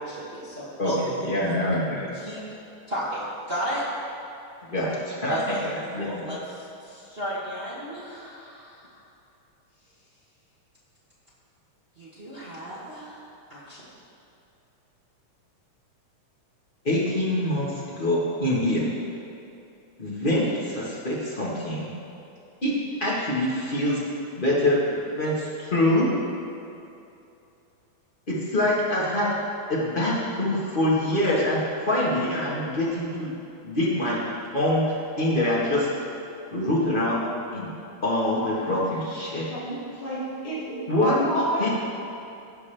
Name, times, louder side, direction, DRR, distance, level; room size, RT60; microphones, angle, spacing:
voice 1, 0.0-1.4 2.1-2.4 2.9-3.8 5.3-5.7 6.0-8.9 12.0-13.2 13.5-13.9, equal, 55° right, -8 dB, 0.6 m, -33 dB
voice 2, 1.2-2.1 4.7-6.2 16.8-18.9 20.0-21.9 22.6-22.7 23.0-24.0 24.4-26.1 28.3-29.3 29.7-33.3 33.6-34.2 34.5-34.8 35.2-35.9 36.5-37.3 37.5-37.7 38.0-39.4 40.9-41.1 41.6-41.7, left 1 dB, 50° left, -7 dB, 0.5 m, -25 dB
voice 3, 39.5-41.7, equal, 70° left, -8 dB, 3.8 m, -30 dB
16.5 x 5.8 x 3.4 m, 2.7 s
omnidirectional pair, 3.4 m